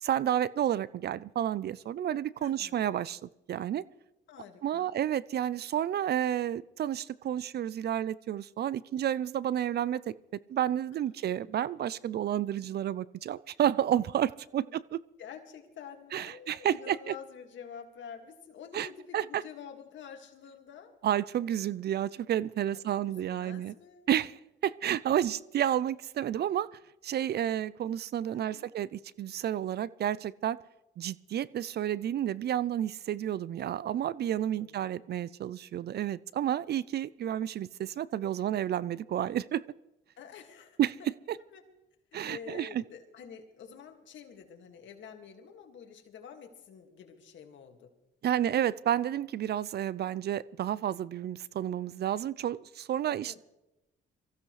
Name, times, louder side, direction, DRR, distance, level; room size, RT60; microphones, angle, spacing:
voice 1, 0.0-3.8 4.6-10.1 10.5-15.0 16.1-17.1 18.7-18.9 19.1-19.4 21.0-23.7 24.1-26.7 27.0-30.6 31.0-39.6 40.8-41.4 42.1-42.8 48.2-53.4, right 10 dB, 55° right, 0.5 m, -31 dB
voice 2, 2.4-2.9 4.3-5.0 10.9-11.1 14.6-14.8 15.2-21.0 22.7-24.1 28.3-28.7 34.4-34.9 40.2-40.8 41.5-41.6 42.1-47.9 53.3-53.4, left 7 dB, 70° left, 2.1 m, -48 dB
23.5 x 15.0 x 3.2 m
cardioid pair, 90°, 20 cm